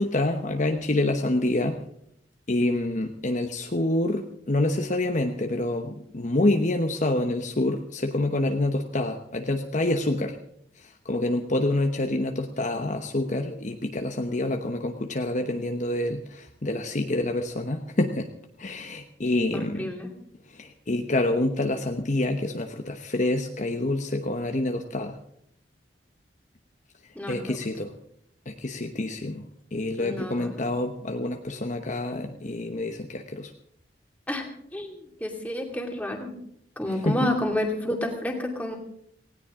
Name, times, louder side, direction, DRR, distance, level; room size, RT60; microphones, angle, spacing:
voice 1, 0.0-1.8 2.5-10.4 10.8-18.3 18.6-19.9 20.6-25.2 27.3-27.9 28.5-29.4 29.7-33.5 37.0-37.2, left 1 dB, 45° left, 4 dB, 1.0 m, -27 dB
voice 2, 19.5-20.1 27.1-27.6 30.0-30.6 34.3-36.3 36.8-38.8, left 1 dB, 10° left, 1 dB, 2.6 m, -30 dB
18.5 x 17.0 x 3.8 m, 0.70 s
head